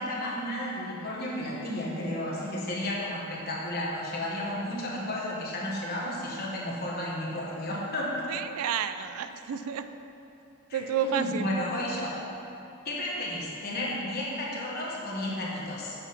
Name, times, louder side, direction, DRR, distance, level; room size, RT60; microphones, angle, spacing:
voice 1, 0.0-8.3 10.7-12.1 12.8-15.9, left 1 dB, 45° left, -4 dB, 1.3 m, -32 dB
voice 2, 8.3-9.9 10.7-11.5, right 7 dB, 80° right, 10 dB, 0.3 m, -30 dB
7.1 x 4.2 x 5.7 m, 2.9 s
head